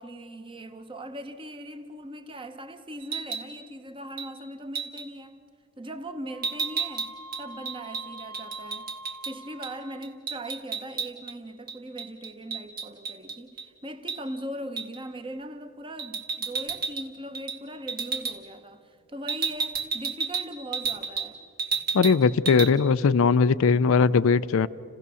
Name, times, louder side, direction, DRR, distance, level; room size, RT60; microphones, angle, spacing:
voice 1, 0.0-5.5 5.8-8.9 9.3-21.4, right 1 dB, 20° right, 0.9 m, -40 dB
sound 1, 3.0-3.5 4.2-4.3 4.7-5.0 6.4-9.3 9.6-9.7 10.0-11.3 11.7-13.7 14.1-14.2 14.8-15.0 16.0-17.1 17.3-17.6 17.9-18.4 19.3-21.3 21.6-22.2 22.5-22.7, right 5 dB, 40° right, 1.6 m, -32 dB
Wind instrument woodwind instrument, 6.3-10.2, right 1 dB, 75° right, 0.8 m, -44 dB
voice 2, 21.9-24.7, left 5 dB, 65° left, 0.4 m, -20 dB
28.5 x 16.5 x 7.0 m
head